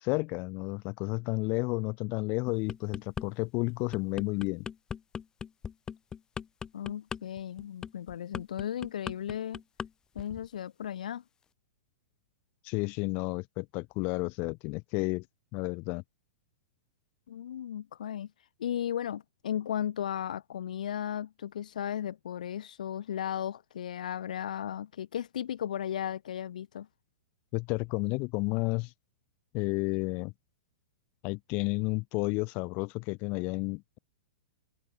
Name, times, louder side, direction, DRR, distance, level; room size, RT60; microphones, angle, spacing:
voice 1, 0.0-4.7 12.6-15.3 15.5-16.0 27.5-28.9 29.5-30.3 31.2-34.0, left 28 dB, 40° left, 2.3 m, -31 dB
sound 1, 2.5-3.3 3.7-9.9 10.2-10.5, left 7 dB, 15° left, 3.7 m, -39 dB
voice 2, 6.7-9.6 10.2-11.2 17.3-18.3 18.6-26.9, left 10 dB, 80° left, 2.0 m, -35 dB
hypercardioid pair, 140°, 4 cm